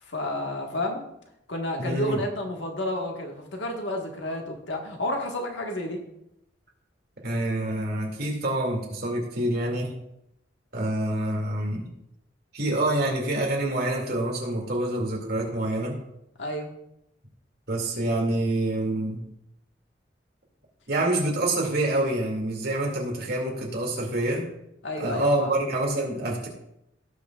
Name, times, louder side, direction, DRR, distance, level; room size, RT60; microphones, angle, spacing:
voice 1, 0.0-1.0 1.5-6.0 16.4-16.7 24.8-25.6, left 1 dB, 80° left, 2 dB, 1.6 m, -30 dB
voice 2, 1.8-2.2 7.2-9.9 10.7-11.9 12.5-16.0 17.7-19.2 20.9-24.4 25.0-26.5, right 1 dB, 60° right, -1 dB, 2.5 m, -26 dB
17.5 x 6.1 x 2.4 m, 0.80 s
head